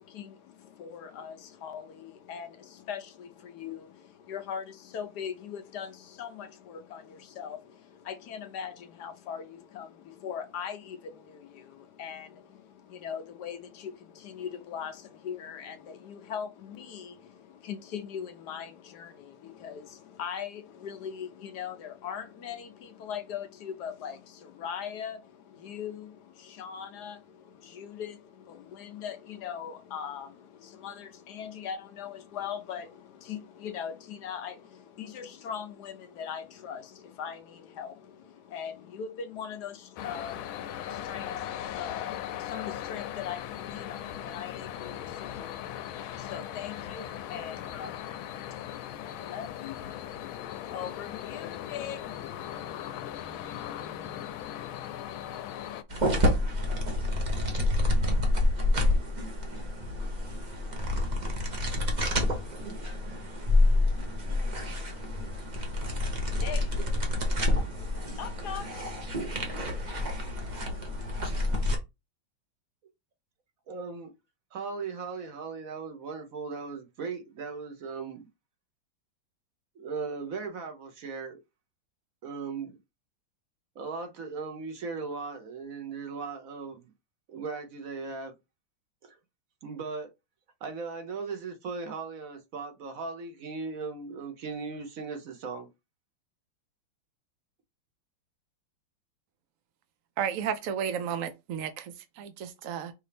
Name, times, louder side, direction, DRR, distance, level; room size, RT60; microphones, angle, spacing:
voice 1, 0.0-52.6 66.1-71.0, left 8 dB, 70° left, 1.0 m, -41 dB
sound 1, 40.0-55.8, left 11 dB, 90° left, 1.4 m, -38 dB
sound 2, 55.9-71.8, left 1 dB, 35° right, 0.7 m, -28 dB
voice 2, 73.7-74.1 74.5-78.3 79.7-81.4 82.2-82.8 83.7-86.9 87.3-88.3 89.0-89.2 89.6-90.1 90.6-95.7, right 4 dB, 55° right, 1.1 m, -37 dB
voice 3, 100.2-102.9, right 8 dB, 80° right, 0.7 m, -33 dB
5.7 x 2.7 x 3.4 m
omnidirectional pair, 2.2 m